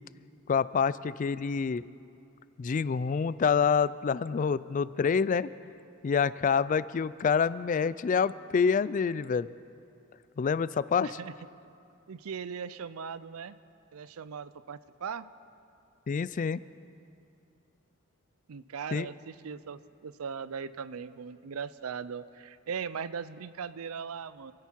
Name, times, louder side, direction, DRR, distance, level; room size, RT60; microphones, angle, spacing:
voice 1, 0.5-1.8 2.6-5.5 6.0-9.5 10.4-11.1 16.1-16.6 18.9-19.1, left 6 dB, 35° left, 17 dB, 0.3 m, -27 dB
voice 2, 11.0-11.3 12.1-13.6 13.9-15.3 18.5-24.5, right 6 dB, 85° right, 15 dB, 0.5 m, -39 dB
27.0 x 10.5 x 4.5 m, 2.6 s
head